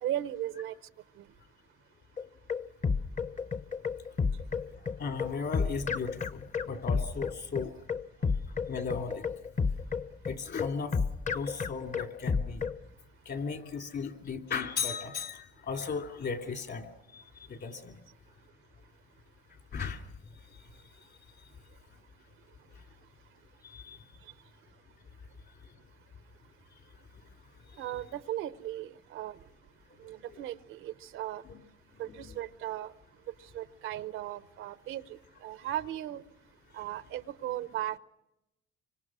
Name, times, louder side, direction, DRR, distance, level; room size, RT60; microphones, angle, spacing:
voice 1, 0.0-0.8 1.2-1.3 27.8-29.4 30.0-31.4 32.0-32.9 33.5-36.2 36.7-38.0, right 12 dB, 90° right, 0.8 m, -37 dB
sound 1, 2.2-12.8, left 5 dB, 40° left, 0.8 m, -31 dB
voice 2, 5.0-7.7 8.7-9.2 10.3-10.9 11.3-12.6 13.3-16.8 17.1-17.2 17.5-17.9 19.7-20.0 23.6-24.0 31.4-31.6 32.0-32.3, left 5 dB, 60° left, 2.9 m, -36 dB
26.0 x 25.0 x 6.1 m
cardioid pair, 90°, 20 cm